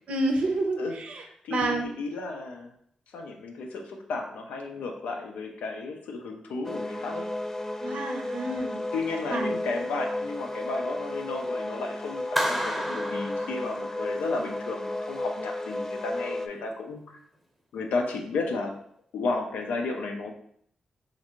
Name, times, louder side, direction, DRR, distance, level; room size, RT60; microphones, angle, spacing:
voice 1, 0.1-1.2 1.5-1.8 7.8-8.8 9.3-9.5, right 2 dB, 65° right, 4 dB, 0.6 m, -28 dB
voice 2, 0.8-2.7 3.1-7.3 8.7-17.2 17.7-18.7 19.1-20.3, left 3 dB, 85° left, 3 dB, 0.4 m, -33 dB
sound 1, 6.6-16.5, left 1 dB, 20° left, 0.3 m, -33 dB
Clapping, 12.4-14.2, equal, 5° left, 0.8 m, -31 dB
3.2 x 2.6 x 2.9 m, 0.68 s
supercardioid pair, 50°, 2 cm